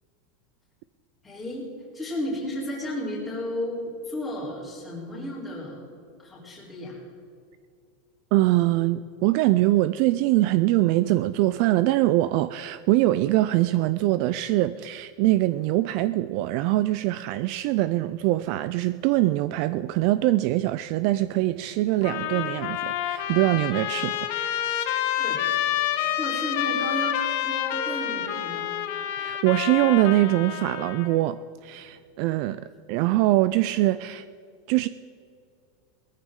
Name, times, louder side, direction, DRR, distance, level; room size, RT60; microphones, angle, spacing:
voice 1, 1.2-1.7 1.9-5.8 6.2-7.0 25.2-25.6 26.2-28.7, left 1 dB, 5° left, 3.4 m, -33 dB
voice 2, 8.3-24.2 29.1-34.3 34.7-34.9, right 16 dB, 45° right, 0.3 m, -23 dB
Trumpet, 22.0-31.2, left 11 dB, 55° left, 1.3 m, -28 dB
19.0 x 14.0 x 3.7 m
supercardioid pair, 170°, 0 cm